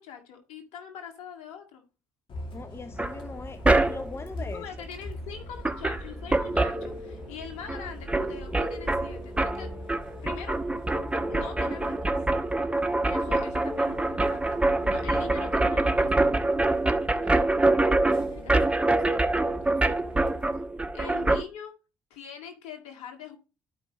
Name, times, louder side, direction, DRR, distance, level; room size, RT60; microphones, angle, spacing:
voice 1, 0.0-1.8 4.4-9.7 10.2-10.6 11.3-12.2 13.1-16.8 17.2-19.8 20.9-21.7 22.1-23.4, left 8 dB, 70° left, 4 dB, 2.0 m, -43 dB
Bus, 2.3-20.6, left 1 dB, 50° left, 2.5 m, -43 dB
voice 2, 2.5-4.6, left 3 dB, 25° left, 12 dB, 0.7 m, -40 dB
sound 1, 3.0-4.3 5.3-5.4 5.6-7.4 7.7-21.4, right 2 dB, 10° right, 1.0 m, -25 dB
12.0 x 5.2 x 3.0 m, 0.31 s
hypercardioid pair, 55°, 11 cm